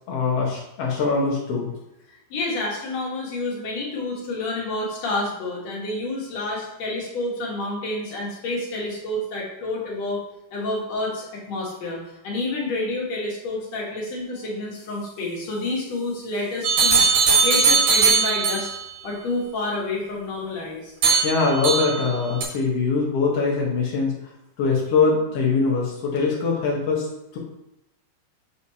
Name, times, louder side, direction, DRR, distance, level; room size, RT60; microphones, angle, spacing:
voice 1, 0.1-1.7 21.2-24.1 24.6-27.1 27.3-27.4, left 4 dB, 75° left, -3 dB, 1.4 m, -22 dB
voice 2, 2.3-10.2 10.5-17.0 17.4-18.7 19.0-20.9, left 2 dB, 55° left, -3 dB, 2.1 m, -29 dB
sound 1, 16.6-18.8 21.0-22.1 22.4-22.5, right 5 dB, 60° right, 2.6 m, -19 dB
6.7 x 6.0 x 2.8 m, 0.88 s
omnidirectional pair, 4.6 m